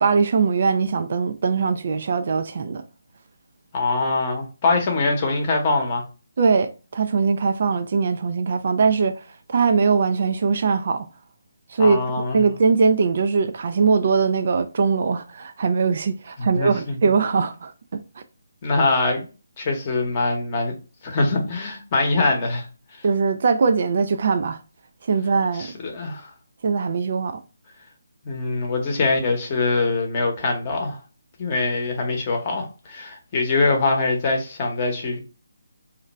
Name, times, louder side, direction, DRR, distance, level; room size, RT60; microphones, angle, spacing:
voice 1, 0.0-2.8 4.7-4.8 6.4-9.2 9.5-11.1 11.7-12.1 12.3-18.0 23.0-24.6 25.1-25.7 26.6-27.4, right 5 dB, 50° right, 0.3 m, -21 dB
voice 2, 3.7-6.0 11.8-12.4 16.4-16.9 18.6-19.3 19.6-20.7 21.0-22.7 25.6-26.3 28.2-31.0 31.4-35.2, left 3 dB, 30° left, 0.8 m, -23 dB
2.5 x 2.1 x 3.9 m
figure-of-eight pair, 160°, 0 cm